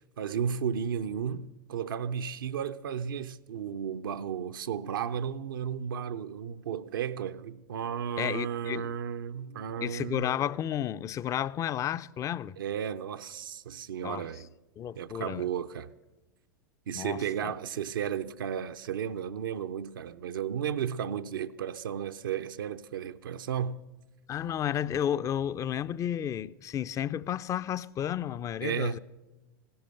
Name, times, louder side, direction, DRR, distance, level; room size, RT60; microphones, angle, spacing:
voice 1, 0.0-10.4 12.6-14.5 15.0-15.9 16.9-23.8 28.6-29.0, right 8 dB, 75° right, 0.5 m, -34 dB
voice 2, 8.2-8.9 9.8-12.6 14.0-14.3 14.8-15.5 16.9-17.6 24.3-29.0, left 10 dB, 30° left, 0.4 m, -32 dB
16.0 x 12.5 x 6.5 m
hypercardioid pair, 90°, 11 cm